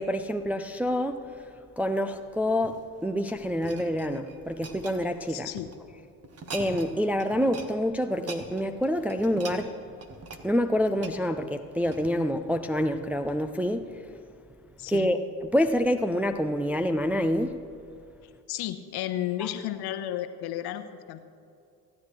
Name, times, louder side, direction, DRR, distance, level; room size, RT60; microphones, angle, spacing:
voice 1, 0.0-5.5 6.5-9.7 10.4-14.2 14.9-17.6, equal, 5° right, 6 dB, 0.5 m, -27 dB
sound 1, 2.5-5.8 6.2-6.9 7.2-7.7 8.0-12.3 12.8-13.0, right 4 dB, 30° right, 1.5 m, -43 dB
voice 2, 5.3-5.7 14.8-15.1 18.5-21.2, left 12 dB, 55° left, 10 dB, 1.0 m, -33 dB
28.5 x 9.5 x 3.3 m, 2.4 s
hypercardioid pair, 65°, 47 cm